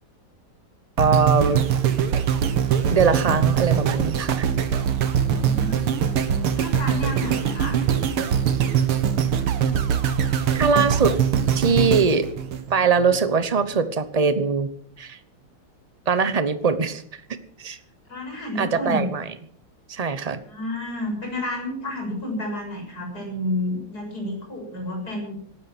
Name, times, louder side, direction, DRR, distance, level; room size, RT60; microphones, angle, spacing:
voice 1, 1.0-1.6 2.9-4.5 10.5-11.2 11.5-12.3 12.7-14.7 15.0-15.2 16.1-17.0 17.6-17.8 18.6-19.3 19.9-20.4, right 5 dB, 45° right, 12 dB, 0.5 m, -21 dB
sound 1, 1.0-13.2 13.7-13.8, right 8 dB, 80° right, 2.3 m, -22 dB
voice 2, 5.2-5.9 6.5-7.8 18.1-19.0 20.5-25.3, left 1 dB, 45° left, 1 dB, 7.6 m, -30 dB
18.5 x 12.5 x 6.2 m, 0.62 s
omnidirectional pair, 2.4 m